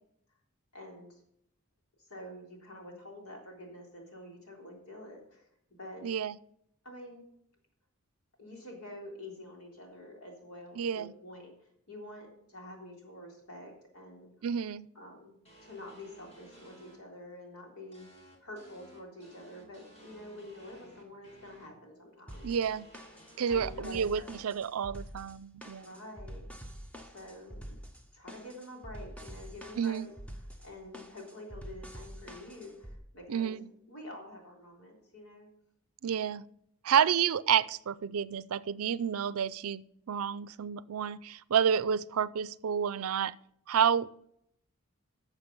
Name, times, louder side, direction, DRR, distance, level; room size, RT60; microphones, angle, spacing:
voice 1, 0.7-1.2 2.0-5.5 5.8-6.1 6.8-7.2 8.4-14.3 14.9-15.4 15.6-22.5 23.5-24.5 25.8-26.4 27.0-27.8 28.1-30.1 30.6-33.6 33.9-35.5, left 1 dB, 85° left, -1 dB, 3.7 m, -47 dB
voice 2, 6.0-6.4 10.8-11.1 14.4-14.9 22.4-22.9 23.4-25.9 29.8-30.1 33.3-33.7 36.0-36.5 36.8-43.3 43.7-44.2, right 8 dB, 80° right, 18 dB, 0.4 m, -30 dB
sound 1, 15.4-17.0 17.9-21.7 22.3-23.8, equal, 30° left, 2.4 m, -56 dB
sound 2, 22.3-33.0, equal, 5° left, 0.9 m, -47 dB
12.0 x 7.0 x 5.4 m, 0.72 s
head